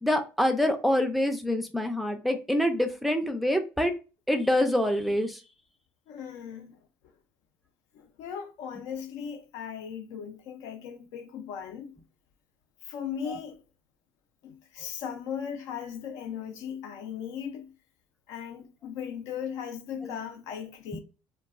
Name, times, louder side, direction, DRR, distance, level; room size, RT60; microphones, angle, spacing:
voice 1, 0.0-3.9 4.3-5.4 20.9-21.0, left 1 dB, ahead, 0.4 m, -26 dB
voice 2, 6.1-6.8 7.9-12.0 12.8-13.6 14.4-17.7 18.3-21.0, left 8 dB, 75° left, 0.5 m, -38 dB
2.3 x 2.2 x 3.5 m
cardioid pair, 125°, 6 cm